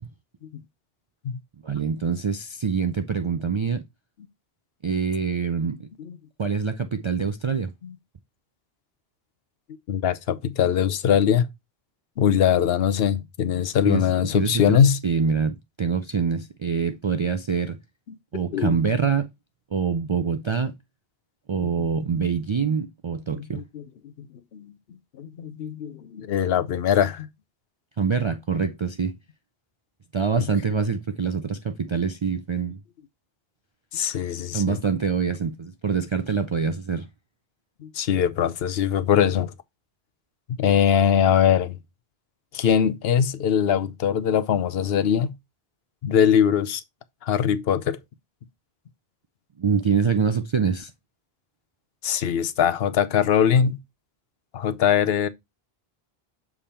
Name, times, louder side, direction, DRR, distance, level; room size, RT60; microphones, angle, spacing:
voice 1, 1.6-3.8 4.8-5.9 6.4-7.7 13.8-14.1 14.3-17.8 18.3-19.3 19.7-20.7 21.5-23.6 28.0-29.1 30.1-32.8 34.5-37.1 49.6-50.9, right 5 dB, 55° right, 0.3 m, -25 dB
voice 2, 9.9-11.5 12.2-15.0 18.5-18.7 21.6-21.7 23.4-23.8 24.2-24.3 24.5-24.7 25.1-27.3 30.4-30.5 33.9-34.8 37.8-39.5 40.5-41.8 42.5-45.4 46.0-46.8 47.2-48.0 52.0-53.8 54.5-55.3, left 8 dB, 75° left, 0.9 m, -22 dB
6.9 x 3.6 x 4.2 m
omnidirectional pair, 1.0 m